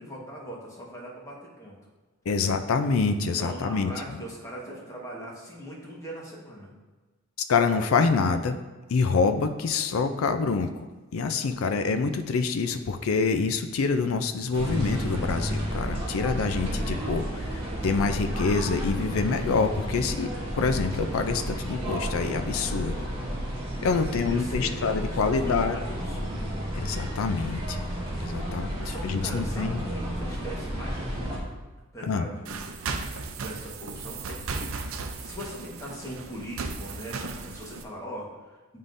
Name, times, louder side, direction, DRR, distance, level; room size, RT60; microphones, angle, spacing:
voice 1, 0.0-1.8 2.3-2.4 3.4-6.7 24.0-26.6 28.7-31.5 31.9-32.7 33.4-34.9 35.2-38.6, equal, 15° left, -4 dB, 1.3 m, -40 dB
voice 2, 2.3-3.9 7.5-8.6 8.9-10.8 11.1-20.3 20.6-23.0 23.8-25.8 26.8-27.8 28.2-29.8 32.1-32.3, left 4 dB, 90° left, 8 dB, 0.4 m, -26 dB
sound 1, 14.5-31.4, equal, 25° right, 1.4 m, -32 dB
sound 2, 32.4-37.8, right 4 dB, 90° right, 0.6 m, -36 dB
9.7 x 3.7 x 2.6 m, 1.2 s
head